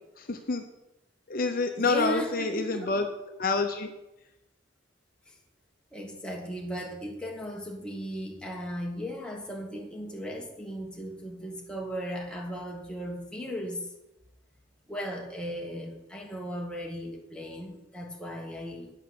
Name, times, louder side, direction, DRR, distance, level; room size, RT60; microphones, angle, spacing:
voice 1, 0.3-0.6 1.3-3.0 3.4-3.9, left 3 dB, 50° left, 5 dB, 0.8 m, -27 dB
voice 2, 1.7-3.0 5.3-5.4 5.9-13.9 14.9-18.9, equal, 5° left, -1 dB, 1.4 m, -36 dB
9.0 x 5.7 x 8.0 m, 0.95 s
head